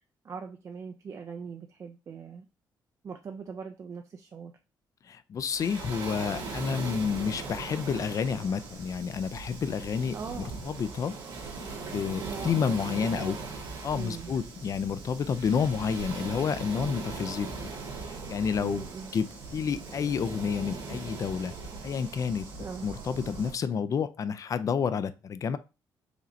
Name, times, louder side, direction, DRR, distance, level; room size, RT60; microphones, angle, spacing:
voice 1, 0.2-2.4 3.0-4.5 10.1-10.6 12.0-13.4 13.9-14.3 18.6-19.1 22.6-22.9, right 5 dB, 40° right, 5 dB, 0.4 m, -41 dB
voice 2, 5.1-10.1 10.6-11.2 11.9-13.4 13.8-17.7 18.0-21.5 21.8-22.5 22.8-25.6, left 6 dB, 45° left, 13 dB, 0.4 m, -30 dB
Waves surf, 5.5-23.5, right 3 dB, 85° right, 1.5 m, -39 dB
4.9 x 3.1 x 2.6 m, 0.31 s
cardioid pair, 115°, 8 cm